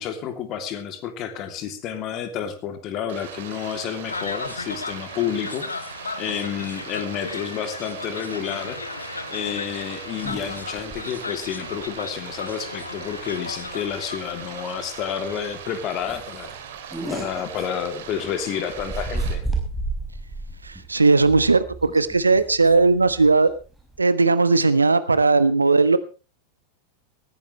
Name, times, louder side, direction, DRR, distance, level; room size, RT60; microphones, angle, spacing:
voice 1, 0.0-8.8 9.3-16.5 17.1-19.4, left 8 dB, 35° left, 8 dB, 3.0 m, -30 dB
Stream, 3.1-19.3, right 8 dB, 60° right, 3.0 m, -40 dB
sound 1, 4.0-15.8, left 4 dB, 75° left, 1.4 m, -36 dB
sound 2, 10.2-11.0 11.4-11.5 11.8-11.9 13.1-13.4 13.7-13.9 14.4-14.5 14.8-14.9 15.3-15.5 16.0-18.3 18.7-24.0, right 2 dB, ahead, 5.1 m, -32 dB
voice 2, 20.6-23.5 24.0-26.0, right 3 dB, 80° right, 14 dB, 1.3 m, -18 dB
19.0 x 15.0 x 3.3 m, 0.33 s
figure-of-eight pair, 90°, 0 cm